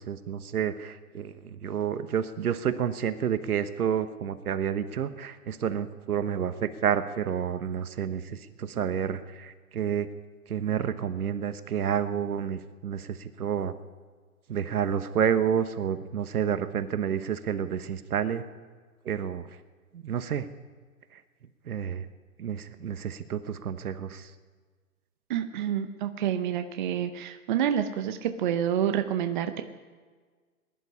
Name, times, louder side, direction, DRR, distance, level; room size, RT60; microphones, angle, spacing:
voice 1, 0.0-10.1 10.5-13.7 14.5-18.4 19.0-19.5 19.9-20.5 21.1-21.2 21.7-22.1 22.4-24.3, right 8 dB, 75° right, 11 dB, 1.3 m, -29 dB
voice 2, 25.3-29.6, right 9 dB, 35° right, 8 dB, 0.7 m, -28 dB
20.5 x 11.0 x 5.6 m, 1.5 s
hypercardioid pair, 145°, 45 cm